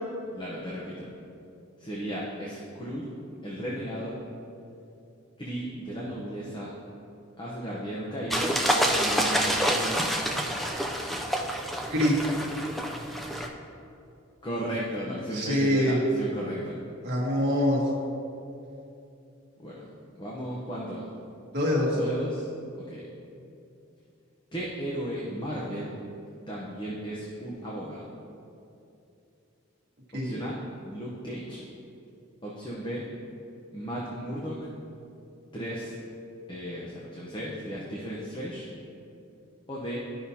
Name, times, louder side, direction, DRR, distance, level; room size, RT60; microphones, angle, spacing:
voice 1, 0.3-1.1 1.8-3.1 3.4-4.2 5.4-6.7 7.4-10.3 14.4-16.7 19.6-19.7 20.2-21.0 21.9-22.5 22.9-23.0 24.5-25.9 26.5-28.0 30.1-30.6 30.8-31.6 32.4-33.0 33.7-34.7 35.5-36.0 36.5-38.7 39.7-40.0, equal, 20° left, -5 dB, 0.8 m, -35 dB
sound 1, 8.3-13.5, equal, ahead, 0.4 m, -27 dB
voice 2, 15.1-16.0 17.0-17.8 21.5-22.0 30.1-30.3, left 1 dB, 50° right, -5 dB, 1.7 m, -25 dB
12.5 x 5.7 x 2.8 m, 2.7 s
head